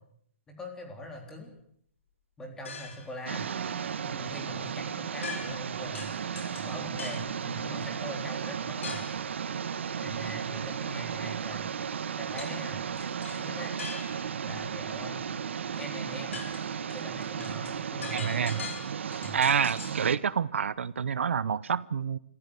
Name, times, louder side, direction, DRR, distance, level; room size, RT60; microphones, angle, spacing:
voice 1, 0.5-1.5 2.4-3.5 4.1-6.1 6.6-9.1 10.0-11.7 12.2-12.9 13.4-13.7 14.4-15.3 15.8-16.4 16.9-18.7 19.2-19.4, equal, 10° left, 2 dB, 3.8 m, -42 dB
sound 1, 2.7-3.2 5.2-5.7 5.9-7.3 8.8-9.2 12.4-12.6 13.0-14.4 15.7-15.8 16.1-20.0, left 5 dB, 80° left, 6.0 m, -42 dB
sound 2, 2.8-14.2, right 3 dB, 10° right, 4.8 m, -62 dB
sound 3, 3.3-20.2, right 7 dB, 70° right, 1.4 m, -35 dB
voice 2, 18.1-18.6 19.3-22.2, right 7 dB, 85° right, 19 dB, 0.9 m, -28 dB
26.5 x 15.0 x 8.3 m, 0.67 s
hypercardioid pair, 165°, 7 cm